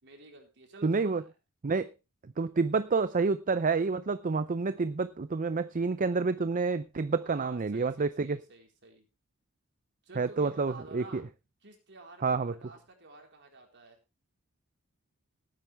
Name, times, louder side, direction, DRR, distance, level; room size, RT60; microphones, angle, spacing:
voice 1, 0.0-1.3 7.2-9.0 10.0-11.2 11.6-14.0, right 3 dB, 55° right, 4.2 m, -51 dB
voice 2, 0.8-1.2 1.6-1.9 2.4-8.4 10.2-11.2 12.2-12.5, right 4 dB, 35° right, 0.5 m, -28 dB
18.0 x 9.3 x 3.4 m
head